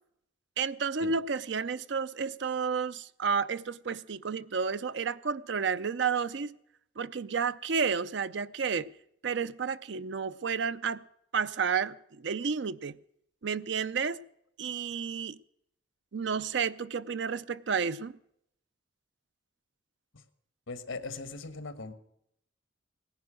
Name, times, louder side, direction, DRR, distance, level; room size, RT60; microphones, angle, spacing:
voice 1, 0.6-6.5 7.0-8.9 9.2-11.1 11.3-13.0 13.4-14.2 14.6-15.4 16.1-18.2, right 5 dB, 65° right, 0.5 m, -31 dB
voice 2, 20.7-21.9, left 3 dB, 80° left, 1.4 m, -39 dB
18.0 x 10.5 x 6.3 m
head